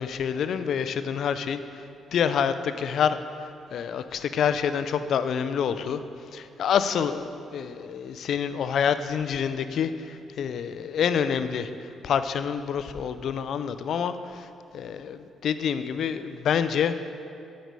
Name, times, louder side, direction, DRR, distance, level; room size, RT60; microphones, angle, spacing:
voice 1, 0.0-17.0, left 7 dB, 65° left, 11 dB, 0.4 m, -27 dB
8.1 x 5.3 x 4.7 m, 2.6 s
cardioid pair, 90°, 0 cm